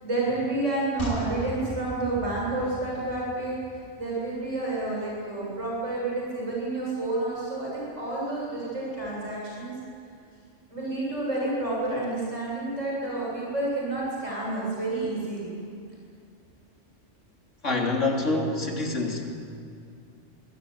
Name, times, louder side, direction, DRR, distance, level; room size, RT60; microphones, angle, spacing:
voice 1, 0.0-3.6 4.0-9.7 10.7-15.6, right 2 dB, 90° right, -5 dB, 8.3 m, -29 dB
sound 1, 1.0-4.4 4.7-4.8, equal, 35° left, 4.1 m, -37 dB
voice 2, 17.6-19.3, left 2 dB, 85° left, 0 dB, 3.6 m, -26 dB
25.5 x 19.0 x 9.6 m, 2.4 s
omnidirectional pair, 1.2 m